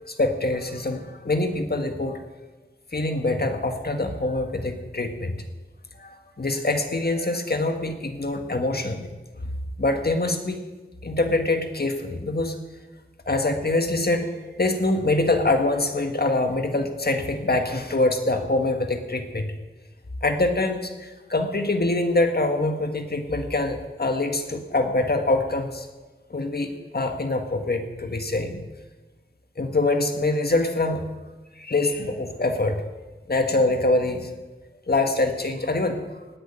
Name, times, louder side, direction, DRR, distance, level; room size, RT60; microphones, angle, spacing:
voice 1, 0.0-2.2 2.9-5.3 6.0-9.1 9.8-10.6 11.0-12.6 13.3-19.5 20.2-25.9 26.3-28.7 29.6-31.1 31.6-32.8 33.3-34.3 34.9-36.0, left 2 dB, 50° left, 5 dB, 1.7 m, -24 dB
17.5 x 6.5 x 10.0 m, 1.2 s
wide cardioid pair, 70°, 21 cm